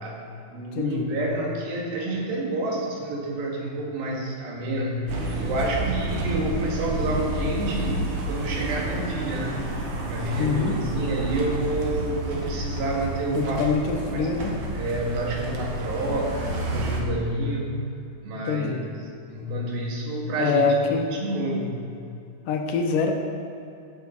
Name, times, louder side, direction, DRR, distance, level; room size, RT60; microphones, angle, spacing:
voice 1, 0.0-9.6 10.0-13.7 14.1-14.3 14.7-17.8 18.2-18.7 19.3-20.7 21.0-21.8, right 1 dB, 85° right, -2 dB, 3.7 m, -29 dB
voice 2, 0.7-1.1 10.4-10.8 13.3-14.5 18.4-18.8 20.4-21.1 22.5-23.1, left 5 dB, 75° left, 4 dB, 2.4 m, -24 dB
sound 1, 5.1-17.0, right 2 dB, 65° right, 2.8 m, -30 dB
15.5 x 7.6 x 5.5 m, 2.7 s
omnidirectional pair, 4.1 m